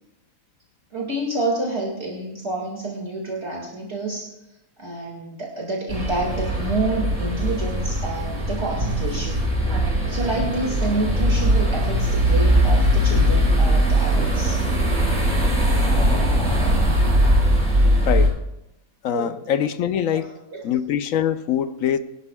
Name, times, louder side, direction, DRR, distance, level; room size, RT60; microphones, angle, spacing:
voice 1, 0.9-4.3 4.8-9.4 10.1-14.6 19.1-19.4 20.1-20.2 20.5-20.6, right 2 dB, 50° right, -1 dB, 2.2 m, -28 dB
sound 1, 5.9-18.3, equal, 70° right, 5.2 m, -20 dB
voice 2, 19.0-20.3 20.6-22.0, left 9 dB, 70° left, 11 dB, 1.0 m, -23 dB
23.5 x 11.0 x 2.3 m, 0.89 s
omnidirectional pair, 1.5 m